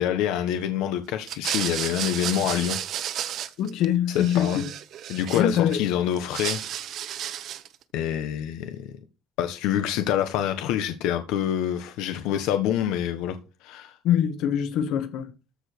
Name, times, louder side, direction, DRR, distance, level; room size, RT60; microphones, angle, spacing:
voice 1, 0.0-2.8 4.1-4.6 5.1-6.6 7.9-8.9 9.4-13.3 13.6-14.0, left 10 dB, 85° left, 1.3 m, -26 dB
sound 1, 1.2-3.8 4.1-5.8 6.1-7.7, right 10 dB, 45° right, 0.9 m, -32 dB
voice 2, 3.6-4.7 5.3-5.8 14.0-15.3, left 10 dB, 65° left, 1.7 m, -23 dB
13.5 x 5.1 x 6.1 m
cardioid pair, 170°, 0 cm